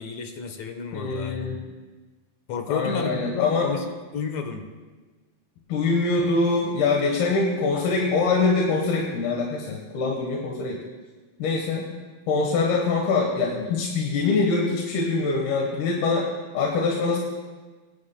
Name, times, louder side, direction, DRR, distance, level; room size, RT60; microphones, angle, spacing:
voice 1, 0.0-1.6 2.5-4.6, left 5 dB, 70° left, 5 dB, 1.8 m, -31 dB
voice 2, 0.9-1.6 2.7-3.7 5.7-10.8 11.4-11.9 12.3-16.3 16.5-17.2, left 4 dB, 85° left, -1 dB, 3.3 m, -24 dB
23.5 x 11.5 x 2.2 m, 1.3 s
omnidirectional pair, 4.3 m